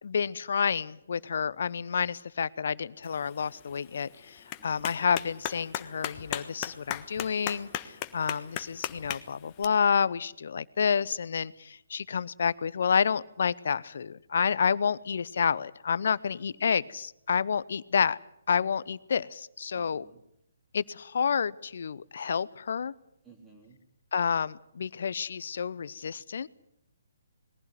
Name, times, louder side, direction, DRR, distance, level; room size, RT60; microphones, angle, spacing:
voice 1, 0.0-7.7 8.1-18.2 18.5-20.0 20.7-22.9 24.1-26.5, left 6 dB, 60° left, 19 dB, 0.8 m, -29 dB
Clapping, 3.0-9.6, left 12 dB, 30° left, 1.4 m, -39 dB
voice 2, 4.6-5.1 16.5-16.7 19.7-20.2 23.2-23.8, right 4 dB, 10° right, 1 dB, 3.4 m, -57 dB
21.5 x 15.5 x 9.7 m, 0.76 s
figure-of-eight pair, 135°, 0 cm